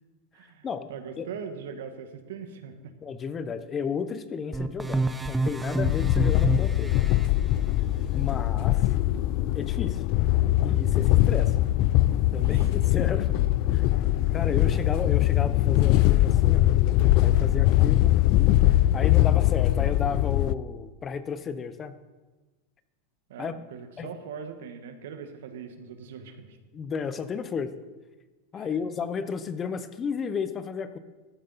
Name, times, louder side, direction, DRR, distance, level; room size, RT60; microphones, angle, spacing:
voice 1, 0.3-2.9 12.4-12.7 13.3-13.5 23.3-26.6 28.5-28.7, right 6 dB, 80° right, 7 dB, 1.3 m, -41 dB
voice 2, 3.0-6.9 8.1-8.8 9.5-10.0 10.6-11.5 12.3-13.3 13.7-13.8 14.3-16.6 17.2-18.1 18.9-21.9 23.4-23.6 24.0-24.1 26.7-27.7 28.5-31.0, left 6 dB, 25° left, 12 dB, 0.7 m, -33 dB
sound 1, 4.5-7.3, right 2 dB, 10° right, 0.7 m, -28 dB
sound 2, 5.8-20.5, left 15 dB, 55° left, 0.3 m, -22 dB
13.5 x 8.6 x 4.1 m, 1.2 s
hypercardioid pair, 120°, 0 cm